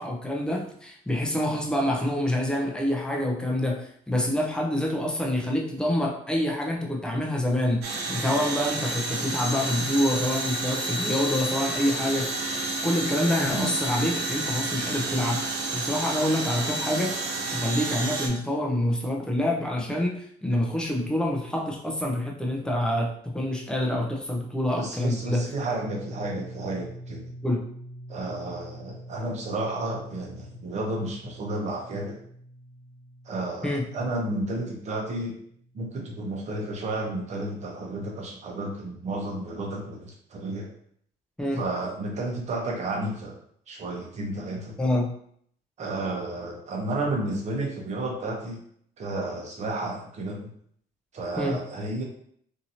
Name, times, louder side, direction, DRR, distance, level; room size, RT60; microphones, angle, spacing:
voice 1, 0.0-12.3 12.8-17.1 17.5-25.5 27.4-27.7 33.6-33.9 41.4-41.6 44.8-45.1 51.4-51.6, left 1 dB, 5° left, 0 dB, 0.6 m, -27 dB
sound 1, 7.8-18.3, right 2 dB, 85° right, 0.7 m, -30 dB
voice 2, 24.8-27.2 28.1-32.2 33.3-35.3 35.7-40.7 41.5-43.4 43.7-44.7 45.8-48.6 49.0-50.5 51.1-52.0, right 2 dB, 45° right, 0 dB, 0.9 m, -32 dB
sound 2, 25.3-37.0, equal, 45° left, 1.2 m, -45 dB
2.8 x 2.7 x 2.8 m, 0.64 s
cardioid pair, 110°, 17 cm